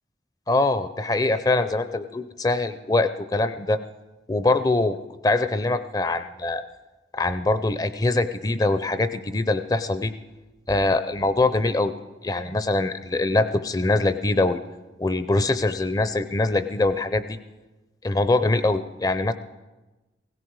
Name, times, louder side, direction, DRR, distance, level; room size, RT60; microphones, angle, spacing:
voice 1, 0.5-3.8 4.3-5.0 5.2-6.6 7.1-10.1 10.7-11.9 12.2-14.6 15.0-17.4 18.0-19.3, left 2 dB, 20° left, 12 dB, 0.5 m, -23 dB
17.0 x 16.5 x 4.7 m, 1.1 s
head